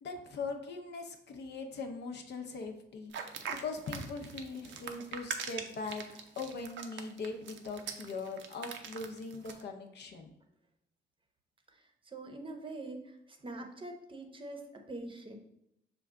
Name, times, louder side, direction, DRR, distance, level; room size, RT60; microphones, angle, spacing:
voice 1, 0.0-3.1 3.5-6.0 6.4-10.3, left 3 dB, 60° left, 4 dB, 0.7 m, -40 dB
sound 1, 3.1-9.6, right 6 dB, 70° right, 0.5 m, -42 dB
voice 2, 11.7-15.4, right 2 dB, 25° right, 3 dB, 0.7 m, -44 dB
6.0 x 2.3 x 3.6 m, 0.78 s
cardioid pair, 90°, 20 cm